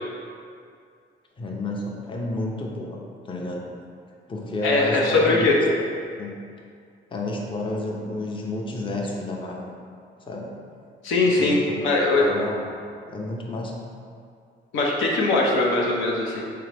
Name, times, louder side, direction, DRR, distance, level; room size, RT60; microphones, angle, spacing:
voice 1, 1.4-3.0 3.2-3.6 4.3-5.4 6.2-6.3 7.1-9.7 10.3-10.6 11.4-11.8 12.2-12.7 13.1-13.8, left 2 dB, 25° left, -1 dB, 0.6 m, -30 dB
voice 2, 4.6-5.6 11.0-12.3 14.7-16.4, left 2 dB, 85° left, -3 dB, 0.7 m, -21 dB
3.8 x 3.3 x 3.3 m, 2.3 s
cardioid pair, 90°, 20 cm